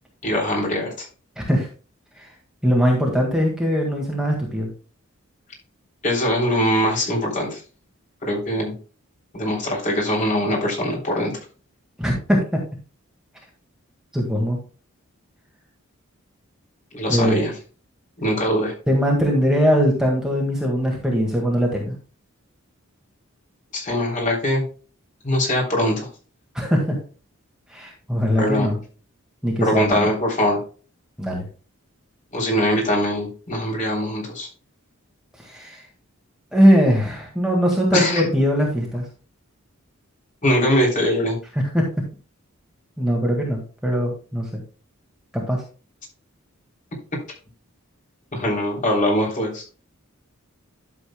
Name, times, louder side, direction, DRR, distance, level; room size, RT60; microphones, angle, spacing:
voice 1, 0.2-1.0 6.0-7.6 8.2-8.7 9.3-11.3 16.9-17.5 18.2-18.7 23.7-24.6 25.2-26.1 28.4-28.7 29.6-30.6 32.3-34.5 37.9-38.2 40.4-41.4 48.3-49.6, equal, 35° left, -1 dB, 3.3 m, -22 dB
voice 2, 1.4-1.7 2.2-2.3 2.6-4.7 12.0-12.6 14.1-14.6 17.1-17.4 18.9-21.9 26.5-26.9 27.7-28.8 29.4-30.1 31.2-31.5 35.4-35.8 36.5-39.0 41.7-41.8 43.0-44.6 45.3-45.6, equal, 5° right, -2 dB, 1.8 m, -20 dB
12.0 x 7.0 x 2.2 m, 0.38 s
head